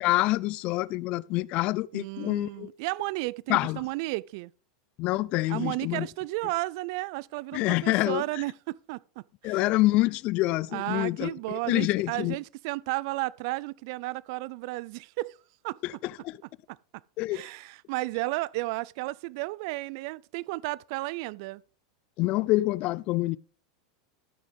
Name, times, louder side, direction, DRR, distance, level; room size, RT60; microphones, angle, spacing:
voice 1, 0.0-2.7 3.5-3.8 5.0-6.1 7.5-8.2 9.4-12.4 15.8-16.4 17.2-17.4 22.2-23.4, left 19 dB, 50° left, 0.4 m, -26 dB
voice 2, 1.9-4.5 5.5-9.6 10.7-15.4 15.6-15.8 16.7-16.8 17.3-21.6, right 21 dB, 60° right, 0.3 m, -33 dB
14.0 x 6.2 x 3.5 m
hypercardioid pair, 105°, 3 cm